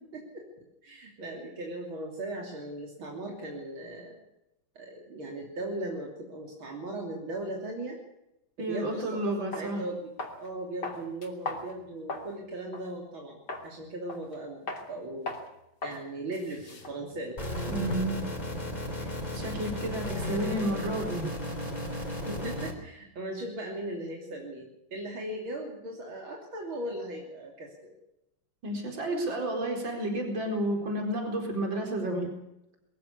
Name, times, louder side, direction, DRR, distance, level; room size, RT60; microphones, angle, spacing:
voice 1, 0.1-0.4 0.8-4.2 4.8-8.0 8.6-10.1 10.4-13.4 13.6-15.3 15.8-17.6 22.3-24.7 24.9-28.0, right 1 dB, 85° right, 0 dB, 3.9 m, -38 dB
voice 2, 8.6-9.8 17.7-18.2 19.0-19.1 19.3-21.3 28.6-32.3, right 1 dB, 70° right, 2 dB, 5.1 m, -31 dB
sound 1, 9.0-9.1 9.5-9.7 10.2-10.5 10.8-12.3 12.7-12.9 13.5-13.7 14.1-14.4 14.7-14.9 15.3-15.5 15.8-16.0 16.3-18.2, left 2 dB, 55° left, 3.6 m, -38 dB
sound 2, 17.4-22.7, left 1 dB, 20° left, 3.5 m, -34 dB
22.0 x 15.5 x 8.4 m, 0.87 s
omnidirectional pair, 2.2 m